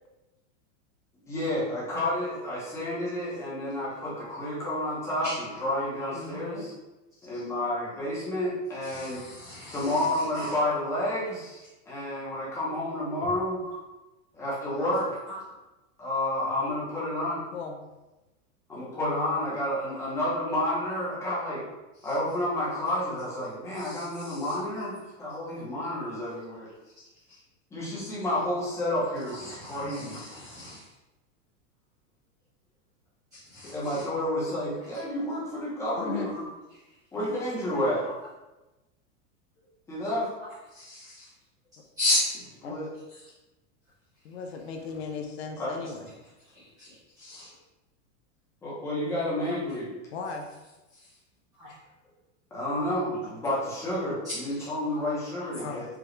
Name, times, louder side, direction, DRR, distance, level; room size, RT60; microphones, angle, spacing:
voice 1, 1.2-5.3 5.6-6.7 7.2-9.2 9.7-13.6 14.3-15.1 16.0-17.4 18.7-21.6 22.0-24.9 25.2-26.7 27.7-30.2 33.6-36.3 37.1-38.1 39.9-40.3 42.6-42.9 45.6-45.7 48.6-49.9 52.5-55.8, left 1 dB, 5° left, -8 dB, 0.7 m, -30 dB
voice 2, 5.2-5.6 6.0-6.1 7.2-7.4 8.8-10.7 13.6-13.8 14.8-14.9 15.3-15.4 16.4-16.7 19.9-20.0 21.9-22.2 23.2-23.3 23.7-24.9 25.3-25.4 26.2-26.3 26.8-27.4 29.1-30.9 33.3-34.0 36.3-36.4 36.7-36.9 37.7-38.1 40.7-41.3 42.0-42.3 43.1-43.3 46.4-47.5 50.9-51.2 51.6-51.8 54.2-54.7 55.4-55.5, left 1 dB, 10° right, -12 dB, 0.4 m, -36 dB
voice 3, 6.1-6.7 17.5-17.9 29.8-30.2 36.0-36.3 42.6-42.9 44.2-46.1 50.1-50.5 55.6-55.8, left 5 dB, 55° left, 3 dB, 0.6 m, -37 dB
4.9 x 2.3 x 3.1 m, 1.1 s
supercardioid pair, 170°, 38 cm